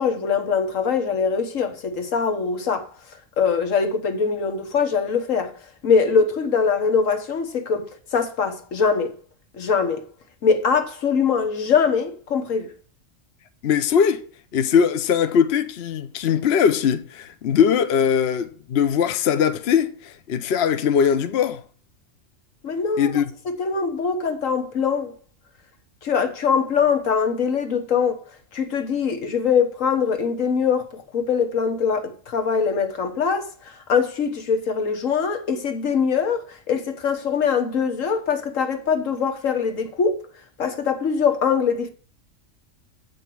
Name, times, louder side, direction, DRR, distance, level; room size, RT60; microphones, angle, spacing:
voice 1, 0.0-2.9 3.4-5.5 5.8-9.2 9.5-10.0 10.4-12.7 22.6-25.1 26.0-28.2 28.5-40.2 40.6-41.9, left 6 dB, 80° left, 1.6 m, -22 dB
voice 2, 13.6-14.2 14.5-21.6 23.0-23.2, left 7 dB, 60° left, 0.9 m, -20 dB
8.0 x 5.2 x 7.6 m
omnidirectional pair, 1.3 m